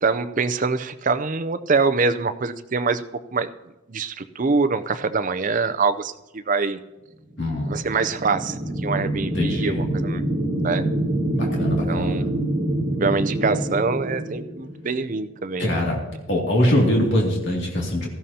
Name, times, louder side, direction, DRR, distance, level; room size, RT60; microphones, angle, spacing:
voice 1, 0.0-3.0 3.3-3.5 3.9-6.1 6.5-6.8 7.7-10.2 10.6-10.9 11.9-12.2 13.0-15.8, right 4 dB, 40° right, 11 dB, 0.5 m, -24 dB
voice 2, 7.4-7.7 9.3-9.8 11.3-12.2 15.6-16.0 16.3-18.1, left 1 dB, 60° left, -2 dB, 2.5 m, -22 dB
sound 1, 7.5-15.1, right 1 dB, 10° right, 1.6 m, -26 dB
16.5 x 14.0 x 2.8 m, 1.0 s
head